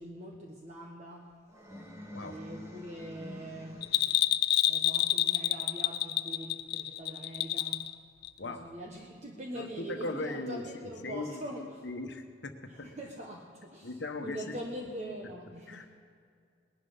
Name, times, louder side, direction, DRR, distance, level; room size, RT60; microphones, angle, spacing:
voice 1, 0.0-1.3 2.2-3.9 4.7-7.9 8.4-11.9 12.7-13.9 14.2-15.9, right 1 dB, 40° right, 0 dB, 1.2 m, -43 dB
sound 1, 1.5-4.4, left 1 dB, 15° right, 1.7 m, -47 dB
Bell, 3.8-7.9 8.2-8.3, left 13 dB, 55° left, 0.5 m, -28 dB
voice 2, 9.5-11.4 11.8-12.9 13.8-14.6 15.7-15.9, left 2 dB, 80° left, 6 dB, 1.2 m, -39 dB
19.5 x 11.5 x 5.7 m, 2.2 s
head